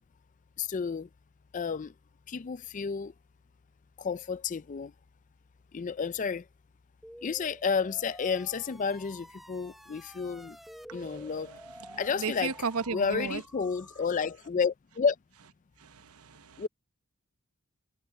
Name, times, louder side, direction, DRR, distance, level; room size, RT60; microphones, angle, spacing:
voice 1, 0.6-1.1 1.5-1.9 2.3-3.1 4.0-4.9 5.7-6.4 7.2-10.6 10.9-11.5 12.0-12.5 12.9-15.2 16.6-16.7, left 5 dB, 35° left, 0.4 m, -31 dB
sound 1, 7.0-14.5, equal, ahead, 1.0 m, -50 dB
voice 2, 10.9-13.4 15.8-16.6, right 5 dB, 80° right, 0.8 m, -36 dB
head